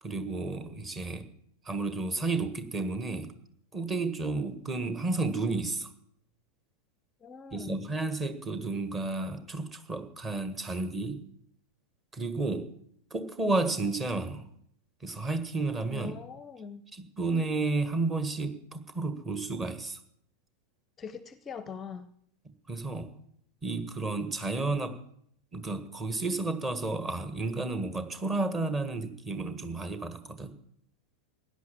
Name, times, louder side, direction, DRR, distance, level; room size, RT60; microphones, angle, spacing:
voice 1, 0.0-1.3 1.6-3.4 3.7-5.9 7.5-11.2 12.1-12.7 13.1-14.5 15.0-16.2 16.9-20.0 22.7-23.1 23.6-25.0 25.5-30.6, right 3 dB, 20° right, 10 dB, 1.6 m, -32 dB
voice 2, 7.2-7.9 15.9-16.8 21.0-22.1, left 6 dB, 20° left, 15 dB, 0.7 m, -42 dB
16.5 x 10.5 x 7.3 m, 0.70 s
figure-of-eight pair, 90°, 0 cm